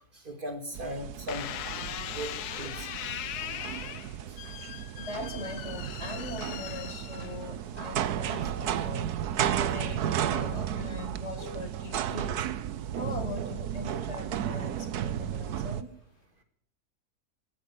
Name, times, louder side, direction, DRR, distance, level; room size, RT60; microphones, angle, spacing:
voice 1, 0.1-1.6 2.1-3.1 3.6-3.7 4.3-4.4, equal, 35° right, 6 dB, 2.1 m, -39 dB
sound 1, 0.7-15.8, right 10 dB, 85° right, 1.4 m, -33 dB
sound 2, 1.3-7.7 8.3-8.8, left 11 dB, 85° left, 1.3 m, -39 dB
voice 2, 5.0-12.7 13.0-15.9, left 2 dB, 45° left, 7 dB, 2.1 m, -41 dB
16.5 x 11.0 x 7.0 m, 0.69 s
omnidirectional pair, 1.6 m